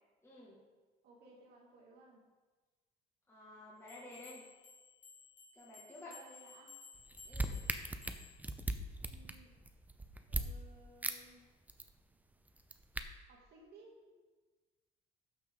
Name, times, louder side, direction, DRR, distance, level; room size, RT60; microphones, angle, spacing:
voice 1, 0.2-0.6 3.3-4.4 5.5-6.1 7.3-7.6, left 1 dB, 15° left, -6 dB, 2.2 m, -52 dB
voice 2, 1.0-2.2 6.1-6.8 9.0-9.5 10.3-11.5 13.3-14.0, right 2 dB, 75° right, -1 dB, 2.3 m, -59 dB
sound 1, 3.9-8.5, left 5 dB, 50° left, 2.3 m, -57 dB
sound 2, 7.0-10.5 11.0-11.2 11.4-11.9 12.5-13.0, right 2 dB, 10° right, 0.6 m, -38 dB
12.0 x 6.2 x 3.9 m, 1.3 s
cardioid pair, 110°, 17 cm